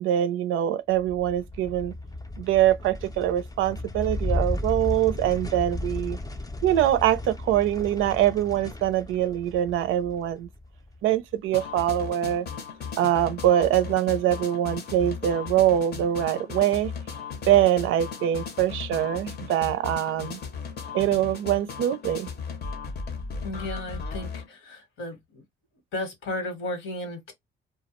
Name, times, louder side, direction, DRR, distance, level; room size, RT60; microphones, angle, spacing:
voice 1, 0.0-1.9 2.4-6.2 6.6-10.5 11.0-12.5 13.0-16.9 17.5-20.4 20.9-22.3, right 12 dB, 85° right, 0.4 m, -23 dB
sound 1, 0.9-11.5, left 1 dB, 20° left, 0.4 m, -34 dB
sound 2, 11.5-24.5, left 5 dB, 55° left, 0.7 m, -36 dB
voice 2, 23.4-25.4 25.9-27.3, left 1 dB, 80° left, 1.2 m, -34 dB
2.2 x 2.0 x 2.9 m
cardioid pair, 90°, 20 cm